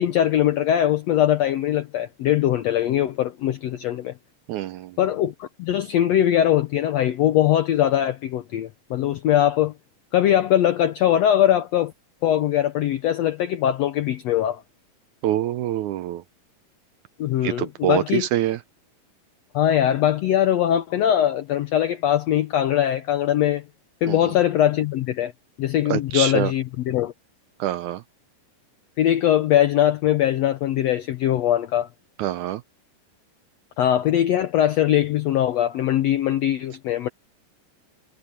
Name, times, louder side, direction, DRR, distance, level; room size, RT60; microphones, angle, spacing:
voice 1, 0.0-4.1 5.0-9.7 10.1-11.9 12.2-14.6 17.2-18.3 19.5-23.6 24.0-25.3 25.6-27.1 29.0-31.9 33.8-37.1, left 11 dB, 80° left, 1.5 m, -21 dB
voice 2, 4.5-5.0 15.2-16.2 17.4-18.6 24.1-24.3 25.9-26.5 27.6-28.0 32.2-32.6, right 12 dB, 80° right, 1.9 m, -25 dB
omnidirectional pair, 4.0 m